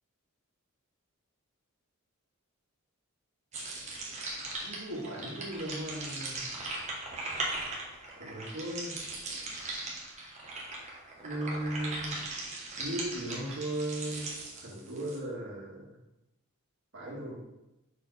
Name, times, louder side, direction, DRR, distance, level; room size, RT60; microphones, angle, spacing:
sound 1, 3.5-15.2, right 2 dB, 30° right, 1.2 m, -39 dB
voice 1, 4.6-6.4 8.2-9.0 11.2-12.2 12.7-16.0 16.9-17.3, right 1 dB, 55° right, -4 dB, 1.9 m, -37 dB
6.1 x 4.4 x 4.1 m, 0.92 s
head